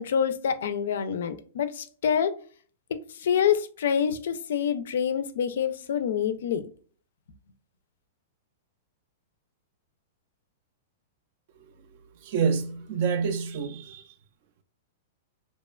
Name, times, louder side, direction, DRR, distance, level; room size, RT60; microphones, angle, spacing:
voice 1, 0.0-2.4 2.9-6.6, left 8 dB, 70° left, 0.3 m, -26 dB
voice 2, 12.2-14.0, right 6 dB, 40° right, 0.3 m, -27 dB
2.8 x 2.1 x 2.2 m
supercardioid pair, 170°, 0 cm